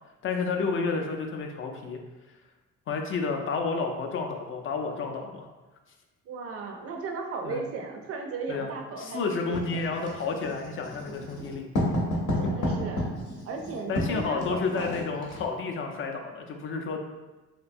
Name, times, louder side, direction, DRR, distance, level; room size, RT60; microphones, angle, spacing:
voice 1, 0.2-2.0 2.9-5.5 7.4-7.6 8.5-11.7 13.9-17.0, left 4 dB, 45° left, 3 dB, 0.4 m, -31 dB
voice 2, 6.3-10.0 12.4-13.1 13.5-15.0, right 4 dB, 50° right, 3 dB, 0.4 m, -36 dB
Writing, 9.5-15.5, equal, 80° left, 0.8 m, -31 dB
2.7 x 2.2 x 2.5 m, 1.2 s
cardioid pair, 90°, 30 cm